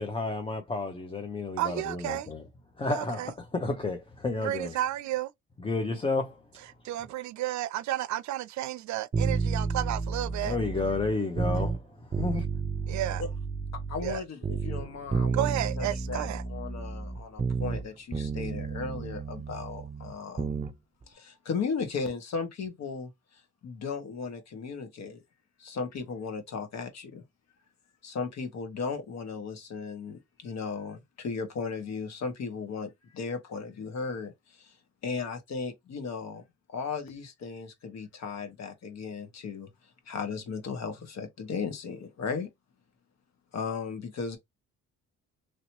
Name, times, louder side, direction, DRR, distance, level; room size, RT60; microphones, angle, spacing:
voice 1, 0.0-2.4 2.8-4.8 5.6-6.4 10.4-11.8 12.1-12.4, left 3 dB, 20° left, 0.7 m, -31 dB
voice 2, 1.6-2.3 2.9-3.3 4.4-5.3 6.8-10.6 12.9-13.2 14.0-14.2 15.3-16.4, right 13 dB, 70° right, 0.4 m, -32 dB
sound 1, 9.1-11.8 12.1-14.2 14.4-17.9 18.1-20.7 21.0-21.1, right 4 dB, 20° right, 0.5 m, -31 dB
voice 3, 13.9-20.6 21.1-25.2 25.6-27.2 28.0-34.8 35.0-36.4 36.7-42.5 43.5-44.4, left 5 dB, 60° left, 1.4 m, -36 dB
3.1 x 2.8 x 2.9 m
cardioid pair, 90°, 30 cm